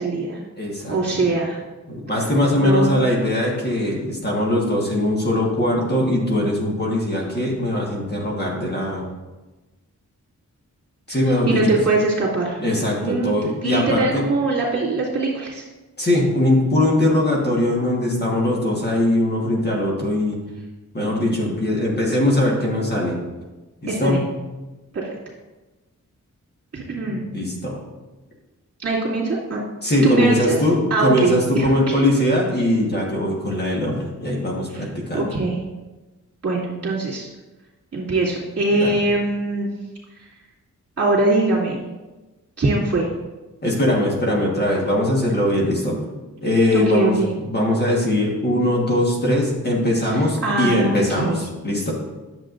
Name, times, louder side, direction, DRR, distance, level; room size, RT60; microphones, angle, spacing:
voice 1, 0.0-0.4 0.9-1.6 2.5-3.0 11.5-12.6 12.9-15.6 23.9-24.2 24.9-25.2 26.7-27.3 28.8-29.6 30.0-30.6 30.9-31.7 34.7-34.8 35.1-35.6 36.4-37.3 37.9-39.7 41.0-41.8 42.6-43.1 46.7-47.3 50.1-51.4, right 2 dB, 50° right, -6 dB, 2.4 m, -22 dB
voice 2, 0.6-1.3 1.9-9.1 11.1-11.8 12.6-14.2 16.0-20.4 20.9-23.2 23.8-24.2 27.1-27.8 29.8-35.3 38.8-38.9 43.6-46.0 46.4-47.2 47.5-51.9, left 1 dB, 30° left, -3 dB, 1.4 m, -21 dB
10.5 x 7.1 x 2.5 m, 1.2 s
wide cardioid pair, 175°, 31 cm